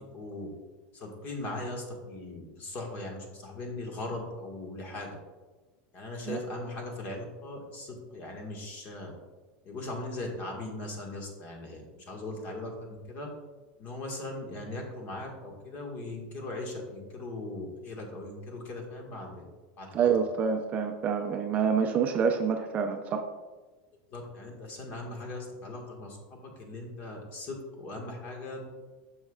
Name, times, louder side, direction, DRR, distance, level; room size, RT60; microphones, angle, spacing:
voice 1, 0.1-0.5 0.9-5.1 5.9-9.1 9.6-13.3 13.8-19.4 19.8-19.9 24.1-28.8, left 2 dB, 35° left, 1 dB, 1.6 m, -39 dB
voice 2, 19.9-23.2, right 6 dB, 30° right, 5 dB, 0.5 m, -27 dB
9.0 x 6.4 x 2.4 m, 1.2 s
supercardioid pair, 155°, 5 cm